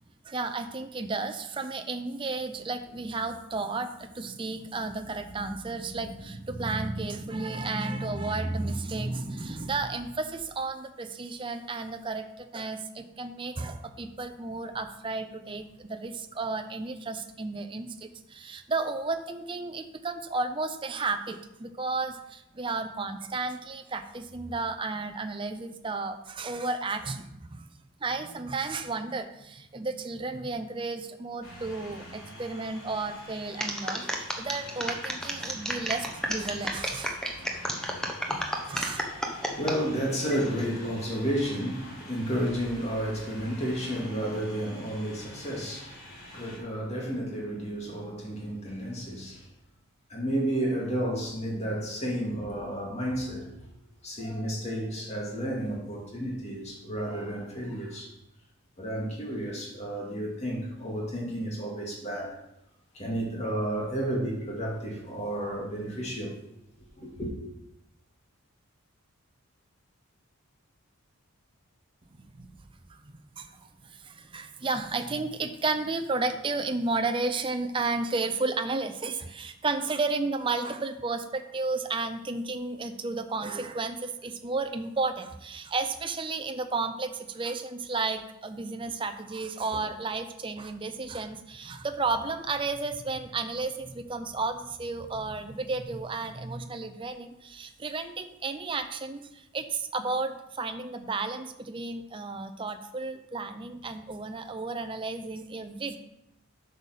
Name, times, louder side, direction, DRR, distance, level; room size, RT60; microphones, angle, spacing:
voice 1, 0.2-27.7 28.0-37.2 38.3-39.1 72.1-72.5 72.9-73.0 73.4-106.0, right 3 dB, 20° right, 8 dB, 0.5 m, -33 dB
sound 1, 31.4-46.6, equal, 70° left, 3.4 m, -46 dB
sound 2, 33.6-39.8 40.2-40.7, equal, 5° left, 0.9 m, -32 dB
voice 2, 38.3-49.5 50.1-53.5 54.0-58.1 58.8-62.4 62.9-66.3 66.8-67.3, right 1 dB, 30° left, -2 dB, 2.2 m, -32 dB
7.9 x 5.6 x 6.5 m, 0.87 s
head